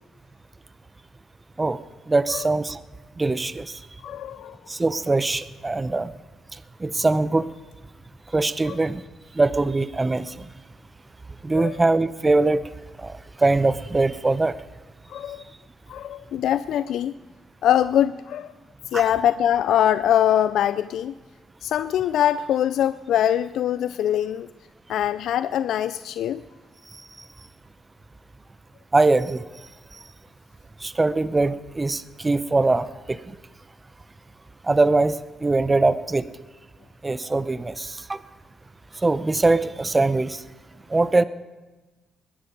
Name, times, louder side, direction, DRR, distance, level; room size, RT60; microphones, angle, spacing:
voice 1, 2.1-2.8 3.2-3.7 4.7-6.1 6.8-7.5 8.3-9.0 9.4-10.5 11.4-12.6 13.0-14.6 28.9-29.4 30.8-33.2 34.7-36.3 37.0-38.2 39.0-40.4 40.9-41.2, right 2 dB, 20° right, 15 dB, 0.7 m, -22 dB
voice 2, 4.0-4.6 8.7-8.8 11.5-11.8 15.1-15.4 15.9-17.2 17.6-18.5 18.9-21.2 21.6-24.5 24.9-26.4, left 10 dB, 75° left, 14 dB, 0.4 m, -23 dB
21.5 x 10.0 x 5.2 m, 1.2 s
cardioid pair, 90°, 0 cm